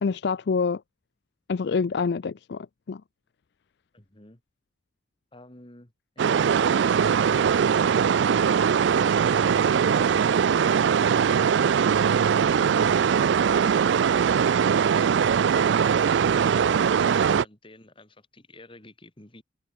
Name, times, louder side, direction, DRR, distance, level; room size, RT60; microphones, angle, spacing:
voice 1, 0.0-0.8 1.5-3.0, left 5 dB, 65° left, 0.4 m, -26 dB
voice 2, 3.9-4.4 5.3-7.6 7.9-10.3 15.4-19.4, left 1 dB, 30° left, 2.5 m, -50 dB
sound 1, 6.2-17.4, right 7 dB, 75° right, 0.4 m, -21 dB
head